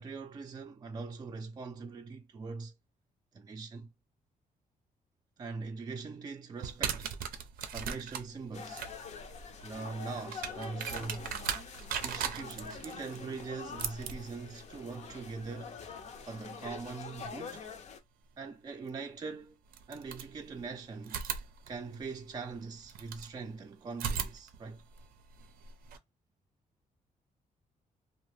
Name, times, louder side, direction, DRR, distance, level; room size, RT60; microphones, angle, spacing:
voice 1, 0.0-2.7 3.3-3.9 5.4-7.1 7.7-8.8 9.6-11.3 12.0-15.8 16.3-17.7 18.4-19.6 19.9-21.2 21.7-24.8, right 4 dB, 30° right, 0.4 m, -42 dB
sound 1, 6.6-17.4 18.9-19.0 19.7-20.7 21.0-23.3 23.9-26.0, right 8 dB, 85° right, 0.5 m, -40 dB
sound 2, 8.5-18.0, left 6 dB, 50° left, 0.5 m, -46 dB
2.7 x 2.0 x 3.1 m
cardioid pair, 125°, 15 cm